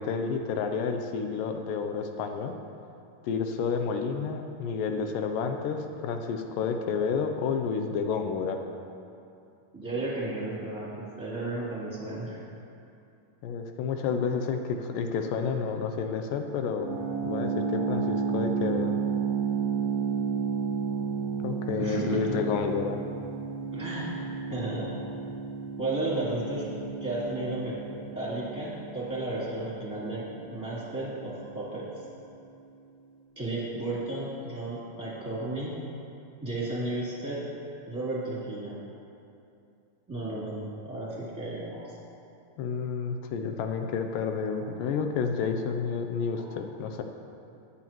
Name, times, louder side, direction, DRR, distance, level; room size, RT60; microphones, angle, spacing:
voice 1, 0.0-2.6 3.2-8.6 13.4-16.9 17.2-19.0 21.4-23.0 42.6-47.0, left 5 dB, 80° left, 5 dB, 2.2 m, -30 dB
voice 2, 9.7-12.4 21.8-22.2 23.7-25.0 25.8-26.7 27.0-27.7 28.1-31.8 33.4-35.8 36.4-37.4 37.9-38.8 40.1-41.9 43.8-43.9 44.6-44.7 46.3-46.5, right 2 dB, 5° right, -9 dB, 2.6 m, -33 dB
sound 1, 16.8-31.6, right 6 dB, 55° left, 3.6 m, -32 dB
21.0 x 7.8 x 3.0 m, 2.6 s
omnidirectional pair, 4.0 m